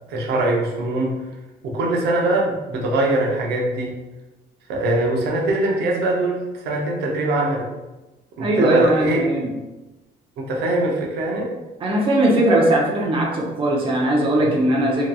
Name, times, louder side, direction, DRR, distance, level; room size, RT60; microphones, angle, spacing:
voice 1, 0.1-1.2 1.6-3.9 4.7-7.7 8.4-9.3 10.4-11.5, right 2 dB, 75° right, -1 dB, 0.6 m, -22 dB
voice 2, 8.4-9.5 11.8-15.1, right 1 dB, 30° right, -2 dB, 0.6 m, -19 dB
2.8 x 2.5 x 2.3 m, 1.0 s
cardioid pair, 110°, 17 cm